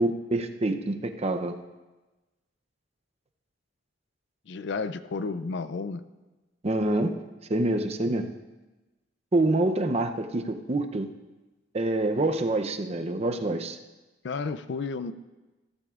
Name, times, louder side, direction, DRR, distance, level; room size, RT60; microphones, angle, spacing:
voice 1, 0.0-1.5 6.6-7.1 7.5-8.3 9.3-11.1 11.7-13.8, right 2 dB, 35° right, 7 dB, 0.6 m, -26 dB
voice 2, 4.5-6.1 14.2-15.1, left 4 dB, 65° left, 13 dB, 0.4 m, -32 dB
15.0 x 13.5 x 2.4 m, 1.1 s
head